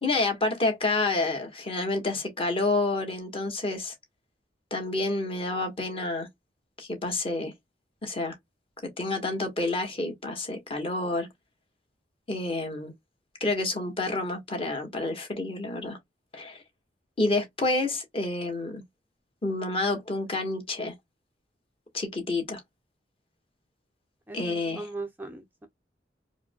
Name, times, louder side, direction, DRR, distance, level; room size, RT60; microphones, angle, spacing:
voice 1, 0.0-3.9 4.7-6.3 6.8-7.5 8.0-8.4 8.8-11.3 12.3-12.9 13.4-16.0 16.3-16.6 17.2-18.8 19.4-20.9 21.9-22.6 24.3-24.8, left 2 dB, 30° left, 1.4 m, -29 dB
voice 2, 24.3-25.7, right 3 dB, 10° right, 0.4 m, -39 dB
4.6 x 2.1 x 2.3 m
head